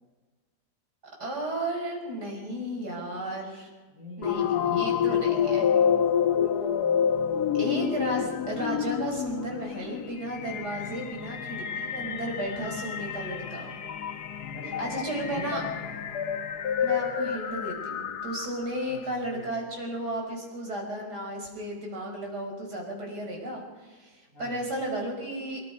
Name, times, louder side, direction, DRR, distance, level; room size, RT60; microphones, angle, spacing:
voice 1, 1.2-3.7 4.2-5.6 7.6-13.7 14.8-15.6 16.8-25.6, right 1 dB, 80° right, 0 dB, 6.1 m, -34 dB
voice 2, 3.9-6.5 10.8-11.0 12.4-12.7 14.4-15.9 18.8-19.7 24.3-24.7, left 2 dB, 55° left, -1 dB, 6.6 m, -43 dB
sound 1, 4.2-18.8, left 8 dB, 75° left, 1.7 m, -28 dB
25.0 x 22.0 x 5.3 m, 1.3 s
omnidirectional pair, 1.7 m